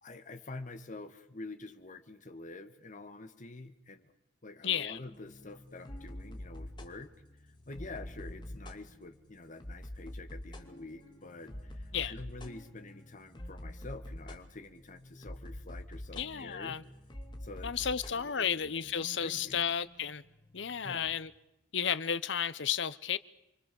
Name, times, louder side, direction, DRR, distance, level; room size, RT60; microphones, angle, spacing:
voice 1, 0.0-4.1 4.4-7.1 7.7-16.8 17.4-18.9 19.2-19.6 20.8-21.2, left 2 dB, 45° left, 1.9 m, -47 dB
voice 2, 4.6-5.0 11.9-12.1 16.1-16.8 17.6-20.2 20.5-21.3 21.7-23.2, left 8 dB, 70° left, 0.9 m, -33 dB
sound 1, 5.1-21.4, left 1 dB, 25° left, 2.5 m, -47 dB
29.0 x 24.0 x 7.1 m
head